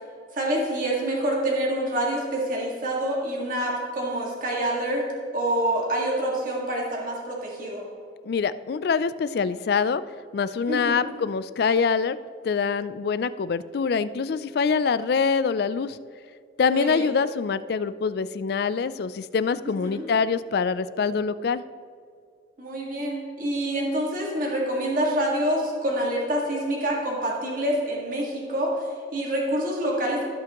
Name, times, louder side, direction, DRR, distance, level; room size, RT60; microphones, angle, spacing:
voice 1, 0.3-5.1 5.3-7.9 10.7-11.1 16.7-17.1 19.8-20.0 22.6-30.3, right 1 dB, 45° right, -2 dB, 1.8 m, -27 dB
voice 2, 8.2-10.0 10.3-12.2 12.4-16.0 16.6-21.6, left 5 dB, 60° left, 15 dB, 0.3 m, -25 dB
17.0 x 5.8 x 3.0 m, 2.2 s
head